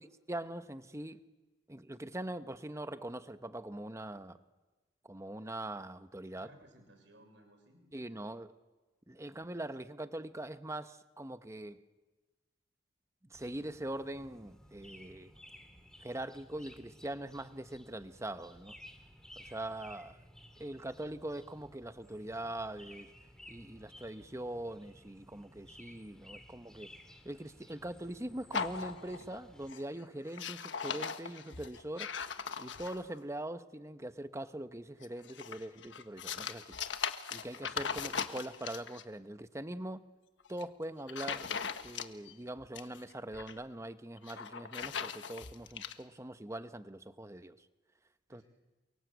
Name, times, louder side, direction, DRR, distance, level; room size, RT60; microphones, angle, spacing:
voice 1, 0.3-1.2 1.7-4.4 5.0-6.5 7.9-8.5 9.1-11.8 13.2-15.3 16.0-18.7 19.4-20.2 20.6-23.1 23.5-26.9 27.2-32.1 32.6-36.8 37.3-40.0 40.5-41.5 41.8-47.7 48.3-48.4, right 1 dB, 15° right, 1.0 m, -42 dB
voice 2, 6.4-7.8 48.3-48.4, right 1 dB, 75° right, 6.7 m, -59 dB
sound 1, 13.3-29.7, equal, 5° left, 2.6 m, -56 dB
sound 2, 28.5-29.4 29.7-30.0 30.3-33.2 35.0-39.0 40.4-40.6 41.1-42.3 42.6-43.6 44.2-45.9, left 6 dB, 80° left, 1.4 m, -39 dB
28.5 x 23.5 x 8.2 m
head